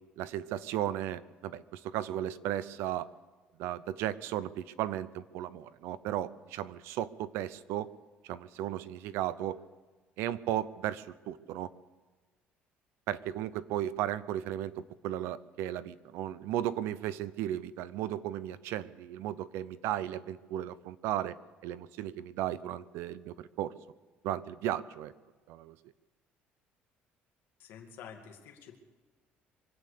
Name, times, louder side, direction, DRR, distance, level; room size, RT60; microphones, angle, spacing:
voice 1, 0.2-3.1 3.6-7.9 8.2-9.6 10.2-11.7 13.1-21.4 21.6-23.7 24.2-25.1 25.5-25.7, right 12 dB, 80° right, 16 dB, 0.7 m, -35 dB
voice 2, 27.6-28.8, left 8 dB, 60° left, 2 dB, 2.4 m, -49 dB
24.5 x 8.7 x 6.7 m, 1.3 s
cardioid pair, 180°, 4 cm